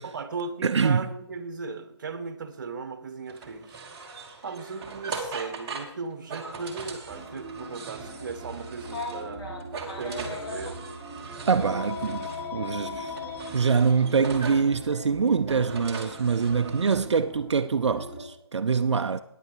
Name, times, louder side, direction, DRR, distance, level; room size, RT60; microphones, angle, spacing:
voice 1, 0.0-3.8 4.4-9.5 10.0-10.8, right 4 dB, 45° right, 1.1 m, -37 dB
voice 2, 0.6-1.1 11.5-13.1 13.5-19.2, right 5 dB, 80° right, 0.5 m, -24 dB
sound 1, 3.3-9.3 9.6-12.5 13.1-14.7 15.3-17.0, right 4 dB, 15° right, 1.3 m, -40 dB
sound 2, 7.1-18.2, right 2 dB, 10° left, 4.5 m, -42 dB
Telephone, 8.8-10.7 11.6-13.5 14.8-15.0 16.5-16.7, left 5 dB, 55° left, 2.4 m, -37 dB
9.7 x 9.1 x 4.8 m
figure-of-eight pair, 165°, 14 cm